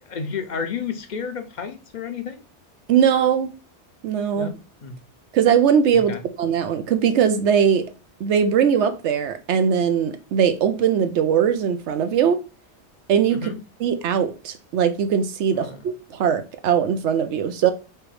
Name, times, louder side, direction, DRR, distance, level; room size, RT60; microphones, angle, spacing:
voice 1, 0.1-2.4 4.3-5.0 6.1-6.2 13.3-13.6 15.5-15.8, left 6 dB, 50° left, 0.6 m, -31 dB
voice 2, 2.9-3.5 4.0-4.5 5.3-7.9 8.2-12.4 13.1-13.4 13.8-17.7, right 8 dB, 80° right, 0.9 m, -20 dB
3.4 x 3.0 x 4.7 m
omnidirectional pair, 1.2 m